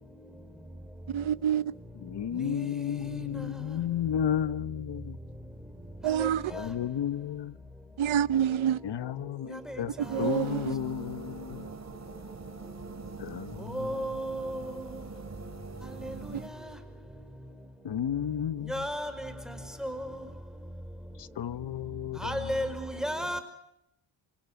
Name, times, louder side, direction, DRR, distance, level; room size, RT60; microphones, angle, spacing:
voice 1, 1.1-1.6 6.0-6.4 8.0-8.8 10.1-10.7, right 9 dB, 70° right, 1.1 m, -27 dB
voice 2, 2.0-5.2 6.5-7.6 8.8-9.9 10.2-11.7 13.2-13.9 17.8-18.9 21.2-22.5, left 9 dB, 55° left, 1.2 m, -33 dB
sound 1, 10.0-16.5, right 4 dB, 30° right, 4.3 m, -43 dB
voice 3, 13.7-14.6 18.7-19.1 19.8-19.9 22.2-23.4, equal, ahead, 5.0 m, -32 dB
27.5 x 27.0 x 7.8 m
cardioid pair, 100°, 49 cm